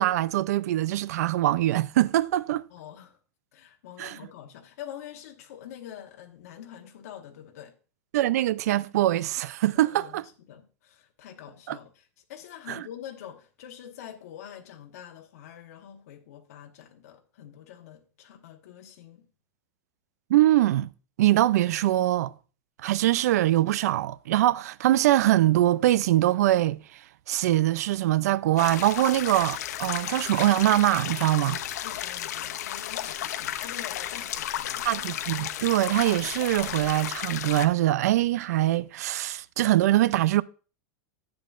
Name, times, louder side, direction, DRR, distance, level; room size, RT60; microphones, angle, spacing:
voice 1, 0.0-2.6 4.0-4.2 8.1-10.2 11.7-11.8 12.7-12.8 20.3-20.9 21.2-22.3 22.8-26.8 27.3-31.6 34.8-40.4, right 15 dB, 75° right, 0.4 m, -23 dB
voice 2, 2.7-3.2 3.5-7.7 9.7-19.3 31.8-34.9, left 10 dB, 70° left, 1.1 m, -45 dB
sound 1, 28.6-37.7, left 11 dB, 85° left, 0.8 m, -33 dB
10.5 x 8.5 x 2.5 m
supercardioid pair, 165°, 9 cm